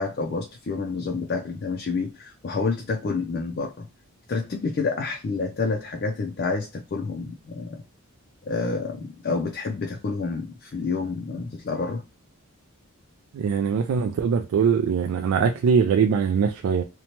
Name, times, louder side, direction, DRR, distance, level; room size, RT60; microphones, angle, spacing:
voice 1, 0.0-3.9 4.3-7.8 8.5-12.0, left 4 dB, 45° left, 0.4 m, -28 dB
voice 2, 13.3-16.8, right 6 dB, 85° right, 0.3 m, -22 dB
2.9 x 2.1 x 2.8 m
head